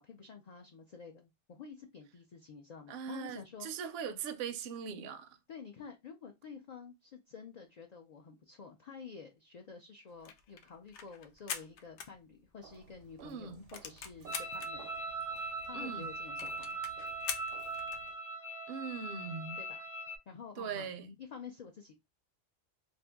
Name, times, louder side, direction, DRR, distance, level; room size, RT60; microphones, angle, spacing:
voice 1, 0.0-3.7 5.5-14.9 15.7-16.8 19.6-19.9 20.3-20.9 21.2-21.9, left 6 dB, 55° left, 0.4 m, -50 dB
voice 2, 2.9-5.3 13.2-13.7 15.7-16.1 18.7-19.6 20.6-21.2, right 6 dB, 65° right, 0.7 m, -40 dB
sound 1, 10.1-12.8 13.1-13.2 13.4-14.7 15.3-15.4 15.6-15.7 16.0-16.1 16.4-18.1, left 7 dB, 75° left, 0.9 m, -43 dB
Walk footsteps, 12.6-18.2, right 7 dB, 90° right, 1.1 m, -57 dB
sound 2, 14.3-20.2, right 2 dB, 30° left, 0.8 m, -40 dB
2.6 x 2.5 x 3.4 m
omnidirectional pair, 1.2 m